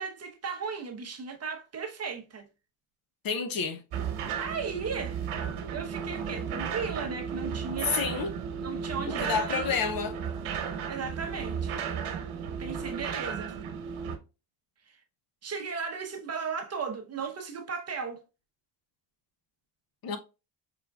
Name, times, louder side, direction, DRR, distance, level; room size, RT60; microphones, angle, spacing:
voice 1, 0.0-2.5 4.4-5.2 5.7-8.0 8.6-9.8 10.9-11.8 12.6-13.6 14.9-15.0 15.4-18.2, right 5 dB, 30° right, 0.8 m, -36 dB
voice 2, 3.2-3.8 7.8-8.3 9.1-10.1 20.0-20.2, left 5 dB, 45° left, 0.7 m, -29 dB
sound 1, 3.9-14.2, right 7 dB, 80° right, 1.2 m, -34 dB
5.0 x 3.6 x 2.2 m
cardioid pair, 155°, 49 cm